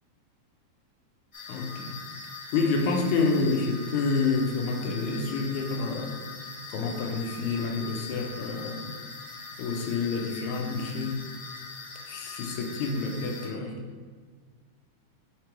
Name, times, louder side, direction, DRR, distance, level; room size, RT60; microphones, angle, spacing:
sound 1, 1.3-13.5, left 4 dB, 30° left, 1.3 m, -42 dB
voice 1, 1.5-2.0 2.5-6.2 6.7-8.9 9.6-11.2 12.1-13.8, left 4 dB, 75° left, 2 dB, 2.0 m, -28 dB
6.6 x 3.3 x 4.6 m, 1.5 s
omnidirectional pair, 3.8 m